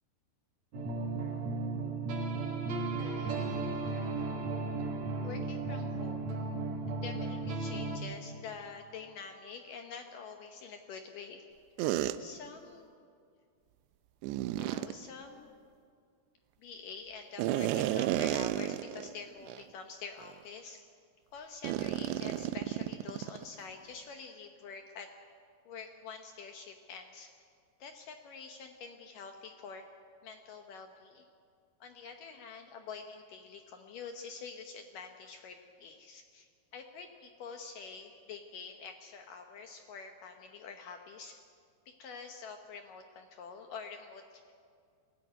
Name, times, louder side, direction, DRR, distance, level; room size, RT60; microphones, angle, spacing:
sound 1, 0.7-8.0, right 3 dB, 50° right, 2.8 m, -35 dB
voice 1, 3.0-3.8 5.2-6.2 6.9-11.4 12.2-12.9 14.6-15.6 16.6-20.8 21.3-25.1 25.7-27.3 27.8-29.9 30.2-31.3 31.8-41.4 41.9-44.5, left 5 dB, 70° left, 5 dB, 2.1 m, -47 dB
sound 2, 11.8-12.2 14.2-14.9 17.4-19.1 19.5-19.6 20.2-20.4 21.6-23.4, right 13 dB, 80° right, 2.7 m, -32 dB
21.0 x 16.0 x 9.3 m, 2.2 s
omnidirectional pair, 5.0 m